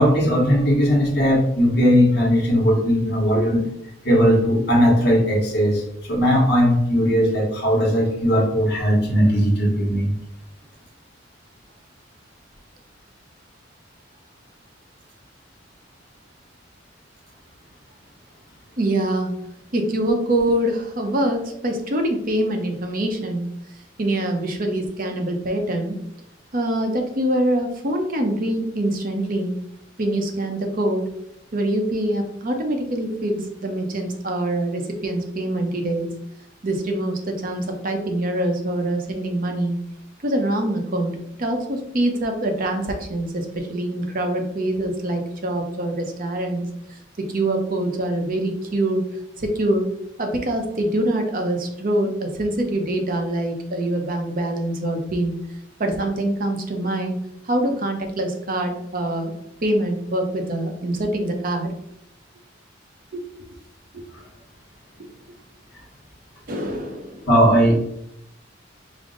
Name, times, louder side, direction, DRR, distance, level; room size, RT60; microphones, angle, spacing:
voice 1, 0.0-3.6 4.0-10.1 67.3-67.7, equal, 55° left, -2 dB, 1.1 m, -18 dB
voice 2, 18.8-19.4 19.7-23.5 24.0-26.0 26.5-29.6 30.0-31.1 31.5-36.1 36.6-39.8 40.2-49.9 50.2-55.4 55.8-59.3 59.6-61.7 63.1-63.2 63.9-64.0 66.5-67.3, right 1 dB, 45° right, 4 dB, 0.7 m, -24 dB
5.2 x 2.0 x 3.7 m, 0.78 s
head